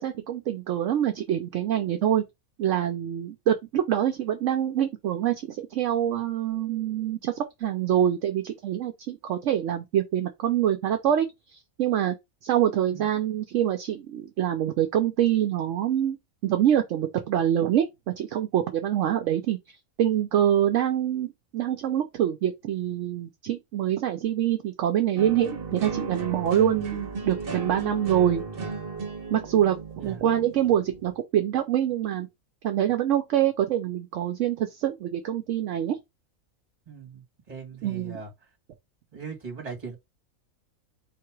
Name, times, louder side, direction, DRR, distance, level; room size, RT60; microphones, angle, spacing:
voice 1, 0.0-2.2 2.6-12.2 12.4-16.2 16.4-28.4 29.3-29.8 30.0-32.3 32.6-36.0 37.8-38.2, right 10 dB, 65° right, 0.9 m, -25 dB
sound 1, 25.2-31.2, right 4 dB, 45° right, 1.2 m, -35 dB
voice 2, 36.9-38.3 39.1-40.0, right 5 dB, 30° right, 1.6 m, -39 dB
3.8 x 2.9 x 4.5 m
omnidirectional pair, 1.5 m